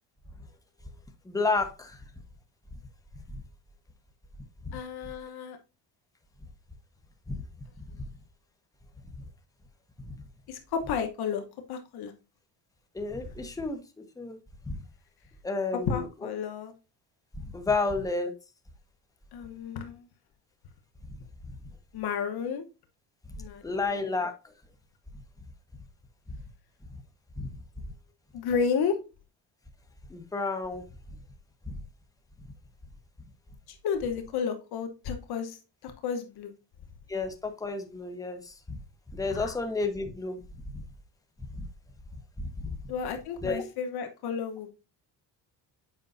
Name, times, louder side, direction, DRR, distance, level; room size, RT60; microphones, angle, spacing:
voice 1, 1.3-2.0 7.3-7.4 12.9-13.8 14.2-14.4 14.7-14.8 15.4-16.0 17.4-18.3 23.6-24.3 27.4-27.5 30.1-30.8 31.7-31.8 37.1-38.8 39.1-40.4 42.6-42.7 43.4-43.6, left 3 dB, 10° left, 1.0 m, -31 dB
voice 2, 4.7-5.6 10.5-11.4 11.7-12.1 15.7-16.7 19.3-20.0 21.9-22.7 23.4-23.8 28.3-29.0 33.7-36.5 39.3-39.6 42.9-44.7, left 6 dB, 65° left, 1.1 m, -32 dB
7.9 x 5.3 x 2.6 m
cardioid pair, 130°, 41 cm